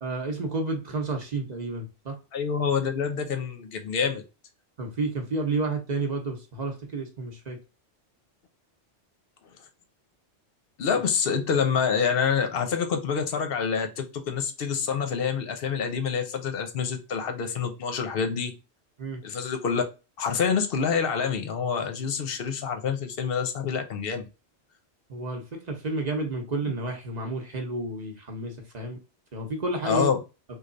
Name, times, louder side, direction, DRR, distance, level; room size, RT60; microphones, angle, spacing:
voice 1, 0.0-2.2 4.8-7.6 19.0-19.2 25.1-29.0 29.3-30.1, right 3 dB, 40° right, 0.8 m, -31 dB
voice 2, 2.3-4.2 10.8-18.5 19.2-19.8 20.2-24.3 29.8-30.2, left 6 dB, 60° left, 0.8 m, -27 dB
3.3 x 2.3 x 3.8 m
omnidirectional pair, 1.2 m